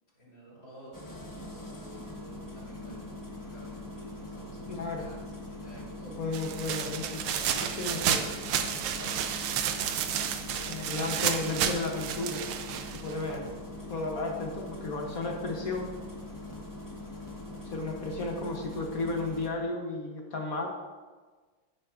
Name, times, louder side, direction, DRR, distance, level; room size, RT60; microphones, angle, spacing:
voice 1, 0.1-1.0 1.4-1.7 2.0-6.2 10.5-11.5 13.3-13.8, equal, 40° left, -6 dB, 3.3 m, -50 dB
Engine starting, 0.9-19.5, left 1 dB, 25° left, 0.4 m, -42 dB
voice 2, 4.7-5.0 6.0-9.1 10.7-12.5 12.9-13.5 13.9-15.9 17.5-20.7, left 3 dB, 55° left, 1 dB, 1.1 m, -34 dB
sound 1, 6.3-13.4, right 9 dB, 85° right, 1.5 m, -31 dB
16.0 x 6.7 x 2.5 m, 1.4 s
omnidirectional pair, 2.3 m